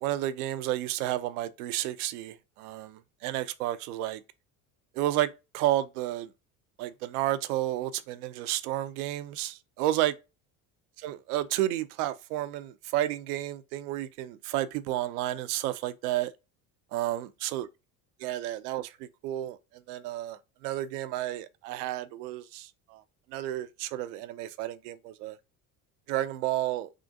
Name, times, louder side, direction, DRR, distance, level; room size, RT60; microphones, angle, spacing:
voice 1, 0.0-4.2 4.9-6.3 6.8-10.1 11.0-16.3 16.9-17.7 18.2-23.0 23.3-25.4 26.1-26.9, right 14 dB, 80° right, 0.5 m, -31 dB
3.7 x 2.4 x 2.6 m
hypercardioid pair, 75°, 45 cm